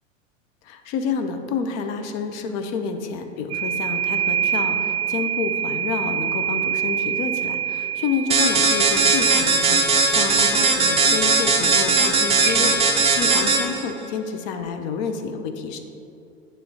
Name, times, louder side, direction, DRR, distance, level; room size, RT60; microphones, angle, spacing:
voice 1, 0.6-15.8, left 5 dB, 40° left, 6 dB, 0.6 m, -29 dB
sound 1, 3.5-9.6 12.4-12.6, right 9 dB, 60° right, 0.7 m, -25 dB
sound 2, 8.3-13.8, right 4 dB, 15° right, 0.6 m, -18 dB
8.7 x 3.2 x 4.8 m, 2.7 s
figure-of-eight pair, 90°, 39 cm